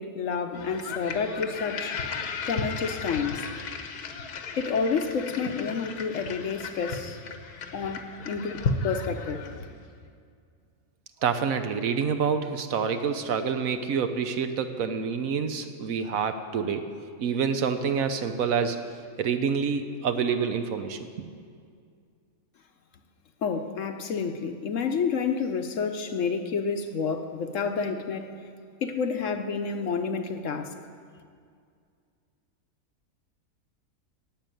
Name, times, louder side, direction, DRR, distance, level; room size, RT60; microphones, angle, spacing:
voice 1, 0.0-1.9 2.5-3.5 4.5-7.2 7.7-9.4 23.4-28.3 28.8-30.7, left 5 dB, 60° left, 7 dB, 1.0 m, -29 dB
sound 1, 0.5-9.8, left 4 dB, 75° left, 1.4 m, -35 dB
voice 2, 11.2-16.9 17.2-18.8 19.2-21.1, right 6 dB, 65° right, 8 dB, 1.1 m, -27 dB
11.5 x 8.3 x 9.1 m, 2.2 s
omnidirectional pair, 1.6 m